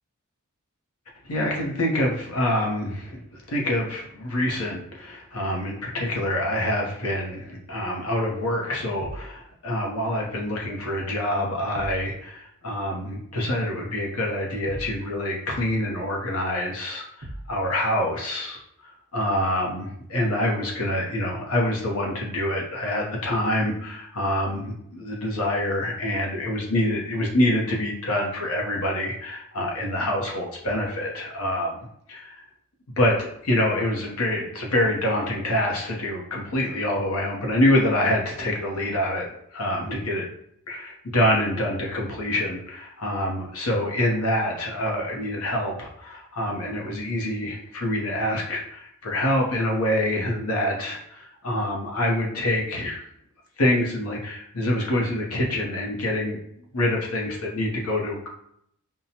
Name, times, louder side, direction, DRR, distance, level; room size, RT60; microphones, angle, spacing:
voice 1, 1.2-32.4 33.0-40.2 40.7-53.0 53.6-56.4 56.7-58.3, left 1 dB, 85° left, -1 dB, 0.9 m, -26 dB
sound 1, 9.0-9.4 11.7-12.1 14.7-15.0 17.2-17.6, right 1 dB, 65° right, 0.8 m, -38 dB
5.5 x 2.2 x 2.8 m, 0.73 s
head